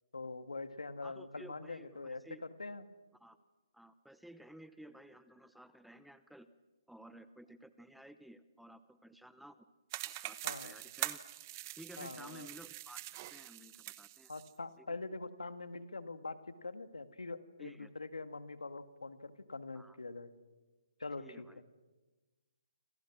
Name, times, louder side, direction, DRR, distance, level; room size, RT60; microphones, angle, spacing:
voice 1, 0.1-2.8 10.4-10.7 12.0-12.5 14.3-20.3 21.0-21.5, left 3 dB, 85° left, 10 dB, 1.9 m, -44 dB
voice 2, 1.0-2.4 3.2-3.4 3.7-6.5 6.9-9.6 10.0-11.2 11.8-14.3 14.8-15.0 17.6-17.9 19.7-20.0 21.2-21.6, right 1 dB, ahead, 12 dB, 0.8 m, -55 dB
sound 1, 9.9-14.5, right 17 dB, 30° right, 1.1 m, -43 dB
29.0 x 26.5 x 6.1 m, 1.2 s
hypercardioid pair, 145°, 3 cm